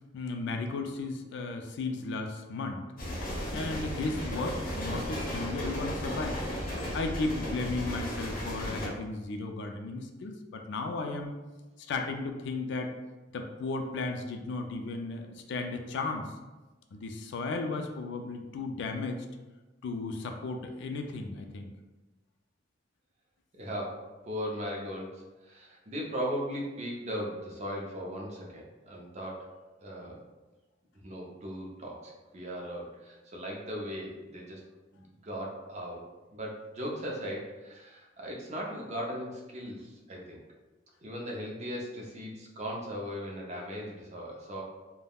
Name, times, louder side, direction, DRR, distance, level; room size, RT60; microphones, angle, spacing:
voice 1, 0.1-2.9 3.5-6.4 6.9-11.3 11.9-12.9 13.3-16.3 16.9-19.3 19.8-21.7, left 3 dB, 65° left, 4 dB, 0.3 m, -35 dB
sound 1, 3.0-8.9, equal, 50° left, 0.8 m, -35 dB
voice 2, 23.5-29.5 29.8-30.2 31.0-34.6 34.9-40.4 41.0-44.6, equal, 35° right, -2 dB, 0.5 m, -38 dB
3.3 x 2.1 x 2.2 m, 1.2 s
head